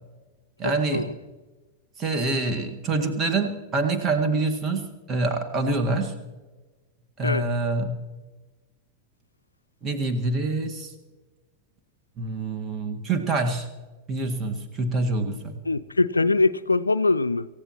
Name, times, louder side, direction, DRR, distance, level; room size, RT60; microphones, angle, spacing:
voice 1, 0.6-1.1 2.0-6.1 7.2-7.9 9.8-10.9 12.2-13.7 14.1-15.5, right 3 dB, 25° right, 1.8 m, -26 dB
voice 2, 15.7-17.5, left 3 dB, 80° left, 0.4 m, -22 dB
26.5 x 15.0 x 3.0 m
figure-of-eight pair, 90°, 0 cm